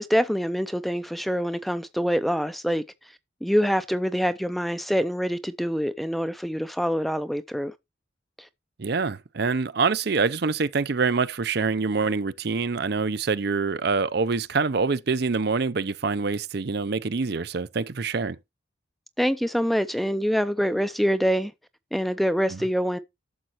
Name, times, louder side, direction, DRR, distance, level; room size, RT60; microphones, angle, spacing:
voice 1, 0.0-2.8 3.4-7.7 19.2-21.5 21.9-23.0, equal, ahead, 0.5 m, -25 dB
voice 2, 8.8-18.4 22.5-22.6, right 4 dB, 55° right, 0.5 m, -25 dB
12.0 x 7.4 x 2.9 m
head